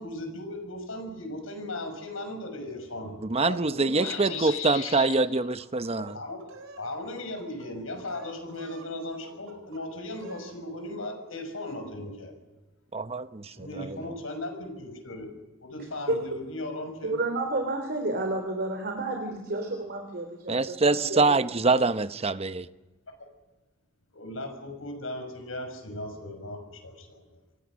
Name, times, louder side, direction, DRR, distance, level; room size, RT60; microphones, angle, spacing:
voice 1, 0.0-3.2 3.4-5.4 6.1-6.4 6.8-12.4 13.6-15.3 15.6-17.2 21.0-21.1 24.1-27.4, left 2 dB, 80° left, 6.0 m, -37 dB
voice 2, 3.2-6.2 12.9-14.0 20.5-22.7, right 3 dB, 30° right, 0.9 m, -25 dB
sound 1, 5.6-6.9 7.2-7.7 8.0-8.9 9.2-9.8 10.1-10.6, right 3 dB, 75° right, 4.1 m, -49 dB
voice 3, 17.0-21.2, right 2 dB, 50° right, 3.3 m, -30 dB
28.5 x 23.0 x 6.4 m
head